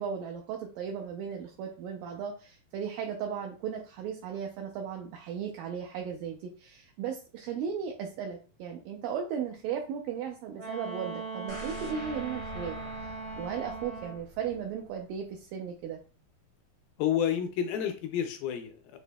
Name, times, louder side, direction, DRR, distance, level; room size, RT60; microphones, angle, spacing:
voice 1, 0.0-13.1 13.4-16.0, right 7 dB, 85° right, 2 dB, 2.0 m, -36 dB
Wind instrument woodwind instrument, 10.6-14.3, right 3 dB, 65° right, 1.4 m, -39 dB
sound 1, 11.5-15.5 15.8-15.9, left 1 dB, 30° right, 0.6 m, -46 dB
voice 2, 17.0-19.0, left 9 dB, 80° left, 7 dB, 2.1 m, -30 dB
6.7 x 2.7 x 2.2 m, 0.37 s
omnidirectional pair, 4.4 m